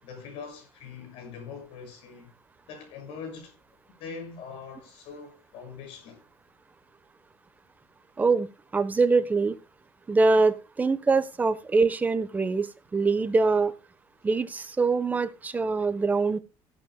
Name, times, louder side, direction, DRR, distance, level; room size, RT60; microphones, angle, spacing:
voice 1, 0.0-2.3 2.7-3.6 4.0-6.2, left 5 dB, 65° left, 6.4 m, -42 dB
voice 2, 8.2-8.5 8.7-9.6 10.1-13.7 14.2-16.4, right 4 dB, 15° right, 0.9 m, -24 dB
16.0 x 12.0 x 2.2 m
cardioid pair, 155°, 10 cm